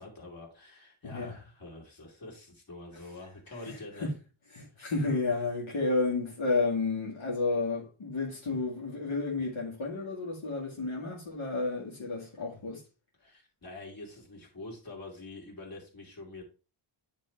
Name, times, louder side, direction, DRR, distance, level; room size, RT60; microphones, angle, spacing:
voice 1, 0.0-4.1 13.2-16.4, left 2 dB, 45° left, 2.7 m, -46 dB
voice 2, 1.0-1.4 2.9-3.1 3.6-4.1 4.5-12.8, left 3 dB, 70° left, 2.0 m, -31 dB
9.1 x 3.3 x 4.4 m
wide cardioid pair, 110°, 50 cm